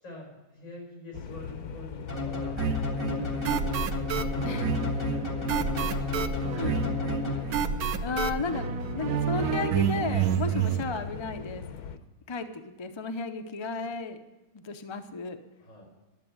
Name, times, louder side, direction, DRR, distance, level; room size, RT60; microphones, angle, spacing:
voice 1, 0.0-2.6 3.0-3.4 4.2-6.9 15.6-15.9, left 1 dB, 60° left, -1 dB, 5.9 m, -45 dB
sound 1, 1.1-12.0, left 7 dB, 90° left, 1.3 m, -40 dB
sound 2, 2.1-7.8, left 3 dB, 10° left, 2.3 m, -33 dB
sound 3, 2.6-10.8, right 7 dB, 80° right, 1.2 m, -29 dB
voice 2, 8.0-11.6 12.3-14.2 14.5-15.4, left 4 dB, 40° left, 7 dB, 0.4 m, -34 dB
12.0 x 7.9 x 8.5 m, 1.1 s
omnidirectional pair, 1.6 m